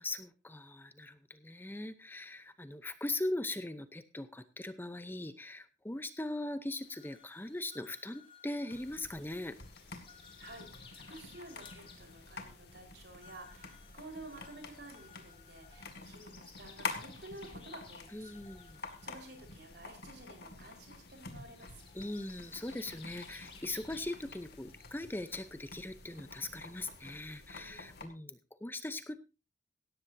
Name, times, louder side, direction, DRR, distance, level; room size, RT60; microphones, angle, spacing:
voice 1, 0.0-9.6 18.1-18.8 21.9-29.2, left 2 dB, 10° left, 11 dB, 0.7 m, -40 dB
sound 1, 6.8-25.5, left 5 dB, 30° left, 2.5 m, -59 dB
rat gnawing its way down through our wooden ceiling, 8.7-28.1, left 3 dB, 60° left, 2.1 m, -48 dB
voice 2, 10.4-18.3 18.7-21.8 27.5-28.1, right 2 dB, 65° right, 4 dB, 4.5 m, -52 dB
17.5 x 14.0 x 2.7 m, 0.28 s
head